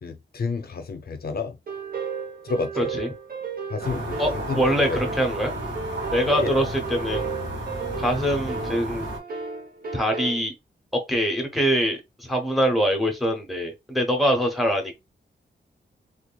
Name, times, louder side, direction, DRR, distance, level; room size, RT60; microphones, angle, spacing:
voice 1, 0.0-1.6 2.4-2.9 3.7-4.2 4.5-5.0 6.4-6.5, left 4 dB, 55° left, 0.5 m, -30 dB
sound 1, 1.7-10.4, right 5 dB, 50° right, 1.0 m, -34 dB
voice 2, 2.8-3.1 4.2-5.5 6.1-7.3 8.0-9.1 9.9-10.5 10.9-14.9, equal, ahead, 0.8 m, -24 dB
sound 2, 3.8-9.2, right 1 dB, 70° right, 2.0 m, -32 dB
3.6 x 3.3 x 2.3 m
wide cardioid pair, 170°, 19 cm